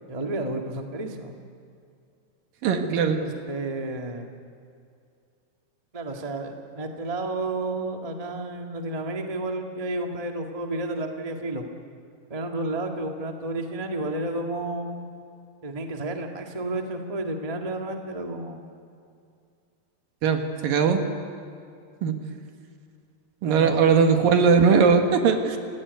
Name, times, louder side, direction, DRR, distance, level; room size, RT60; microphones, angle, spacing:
voice 1, 0.1-1.4 3.2-4.3 5.9-11.7 12.3-15.0 15.6-18.7 23.4-23.9, right 2 dB, 35° right, 2 dB, 0.5 m, -31 dB
voice 2, 2.6-3.2 20.2-21.0 22.0-22.1 23.4-25.6, right 5 dB, 65° right, 5 dB, 3.2 m, -19 dB
29.0 x 16.5 x 9.7 m, 2.4 s
omnidirectional pair, 4.4 m